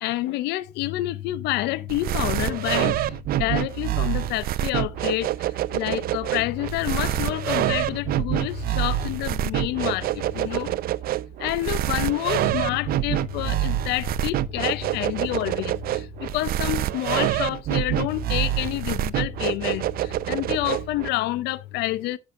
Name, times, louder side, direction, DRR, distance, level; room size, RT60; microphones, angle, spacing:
voice 1, 0.0-3.0 3.3-5.3 5.7-10.7 11.4-22.2, left 16 dB, 85° left, 0.6 m, -28 dB
sound 1, 1.9-21.1, right 13 dB, 60° right, 0.6 m, -26 dB
14.0 x 6.1 x 2.5 m
cardioid pair, 110°, 17 cm